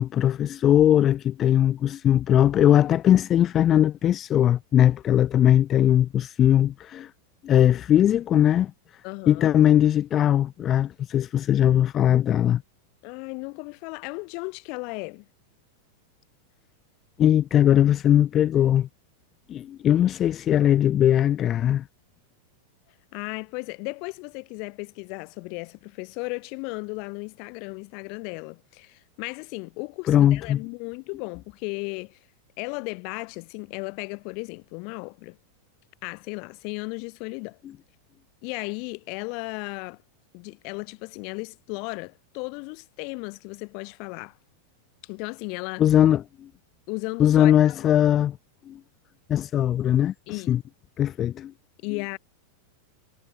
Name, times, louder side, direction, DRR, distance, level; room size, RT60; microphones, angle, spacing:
voice 1, 0.0-7.1 7.4-8.7 9.3-12.6 17.2-18.9 19.5-21.8 30.1-30.6 45.8-46.2 47.2-48.3 48.7-48.8 49.3-50.1 50.5-50.6 51.0-51.5, left 11 dB, 30° left, 0.7 m, -20 dB
voice 2, 9.0-9.5 13.0-15.3 23.1-32.3 32.6-35.4 36.0-37.6 38.4-40.0 40.3-44.4 45.0-45.9 46.9-48.1 50.3-50.5 51.8-52.2, left 36 dB, 45° left, 6.6 m, -35 dB
figure-of-eight pair, 90°, 0 cm